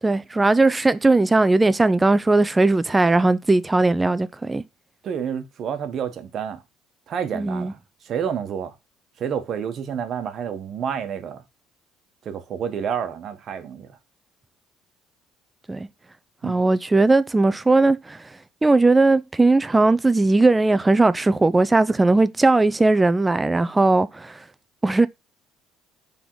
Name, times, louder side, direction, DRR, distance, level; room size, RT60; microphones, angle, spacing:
voice 1, 0.0-4.6 7.3-7.7 15.7-15.9 16.4-24.4 24.8-25.1, right 2 dB, 10° right, 0.3 m, -18 dB
voice 2, 5.0-6.6 7.1-7.8 8.0-8.7 9.2-11.4 12.2-13.9 16.4-16.6, right 8 dB, 45° right, 1.0 m, -29 dB
6.1 x 3.6 x 4.6 m
cardioid pair, 140°, 0 cm